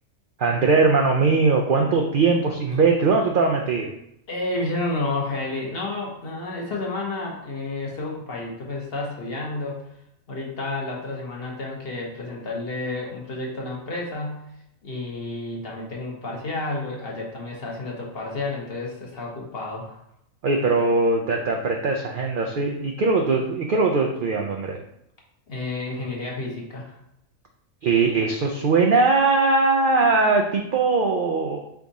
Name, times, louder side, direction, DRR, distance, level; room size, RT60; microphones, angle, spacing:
voice 1, 0.4-3.9 20.4-24.8 27.8-31.6, right 3 dB, 70° right, 1 dB, 0.5 m, -20 dB
voice 2, 4.3-9.8 10.3-14.4 14.8-20.0 25.5-27.0, left 2 dB, 50° left, -2 dB, 1.1 m, -30 dB
3.6 x 3.5 x 4.0 m, 0.78 s
omnidirectional pair, 1.4 m